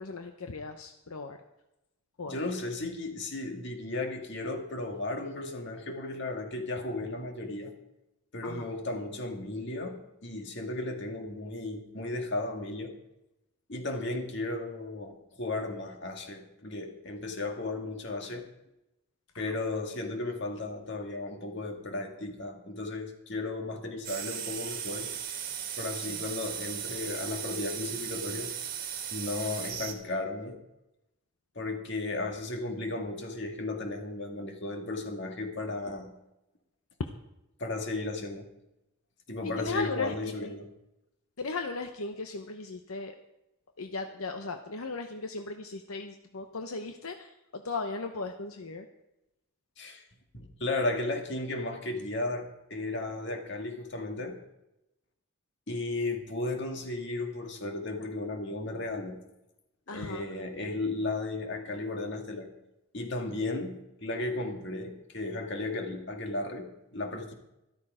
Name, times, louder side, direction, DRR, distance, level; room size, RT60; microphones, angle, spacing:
voice 1, 0.0-1.4 2.2-2.3 8.4-8.6 26.1-26.2 39.6-40.5 41.4-43.1 43.8-48.8 59.9-60.2, left 3 dB, 85° left, 6 dB, 0.9 m, -37 dB
voice 2, 2.2-7.7 8.3-12.9 13.7-18.5 19.4-25.1 25.8-28.6 29.1-30.6 31.6-36.1 37.6-38.5 39.3-40.7 49.8-50.1 50.3-54.4 55.7-59.2 59.9-62.5 62.9-67.3, left 2 dB, 55° left, 3 dB, 2.0 m, -35 dB
sound 1, 24.0-29.9, right 8 dB, 40° right, 1.7 m, -37 dB
13.5 x 13.0 x 5.0 m, 0.90 s
head